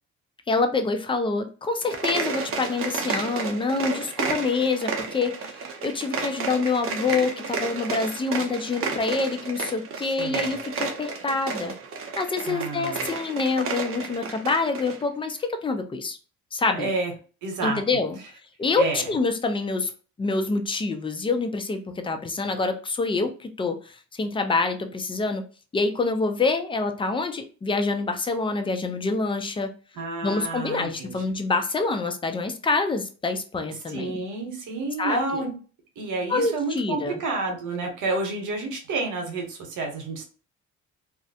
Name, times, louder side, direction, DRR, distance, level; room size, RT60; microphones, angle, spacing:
voice 1, 0.5-11.7 12.2-16.2 16.5-16.9 17.6-18.2 18.6-19.9 20.2-25.4 25.7-29.7 30.2-34.2 35.0-35.4 36.3-37.2, left 3 dB, 15° left, 7 dB, 0.4 m, -26 dB
sound 1, 1.8-15.0, right 5 dB, 45° right, 0.6 m, -32 dB
voice 2, 10.2-10.5 12.5-13.1 16.7-17.1 17.4-17.8 18.8-19.0 30.0-31.2 33.9-35.5 36.0-40.2, right 3 dB, 80° right, 2 dB, 0.9 m, -29 dB
2.4 x 2.1 x 2.6 m, 0.37 s
cardioid pair, 90°, 30 cm